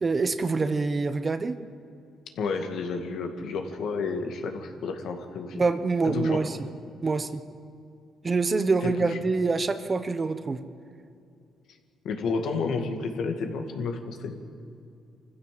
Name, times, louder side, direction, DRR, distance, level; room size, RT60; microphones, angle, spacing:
voice 1, 0.0-1.6 5.5-6.6 7.0-7.4 8.2-10.6, right 4 dB, 30° right, 11 dB, 1.1 m, -25 dB
voice 2, 2.4-5.6 6.0-6.4 8.8-9.2 12.0-14.4, left 4 dB, 75° left, 5 dB, 2.1 m, -31 dB
24.0 x 15.5 x 7.6 m, 2.4 s
cardioid pair, 90°, 0 cm